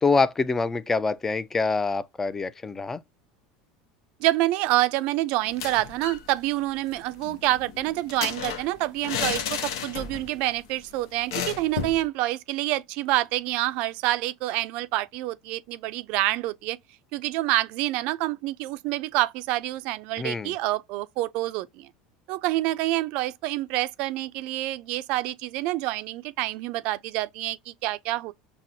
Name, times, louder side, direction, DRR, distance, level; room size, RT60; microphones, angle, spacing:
voice 1, 0.0-3.0 20.2-20.5, left 4 dB, 15° left, 0.4 m, -25 dB
voice 2, 4.2-16.8 17.1-21.9 22.3-28.3, right 16 dB, 60° right, 0.4 m, -27 dB
sound 1, 5.4-6.3 6.5-6.6 6.9-10.4 10.7-10.8 11.3-12.0, left 7 dB, 85° left, 0.6 m, -32 dB
5.8 x 2.0 x 2.7 m
supercardioid pair, 110°, 2 cm